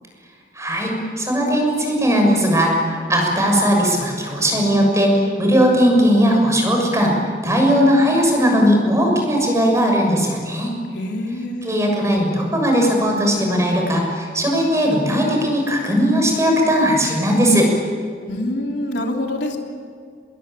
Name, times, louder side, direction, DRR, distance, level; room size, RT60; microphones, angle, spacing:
voice 1, 0.5-0.9 1.2-7.1 7.4-10.7 11.6-17.7, equal, 15° right, 1 dB, 6.8 m, -18 dB
voice 2, 10.9-11.7 18.3-19.6, left 1 dB, 75° left, 2 dB, 3.2 m, -25 dB
26.5 x 22.0 x 9.2 m, 2.1 s
head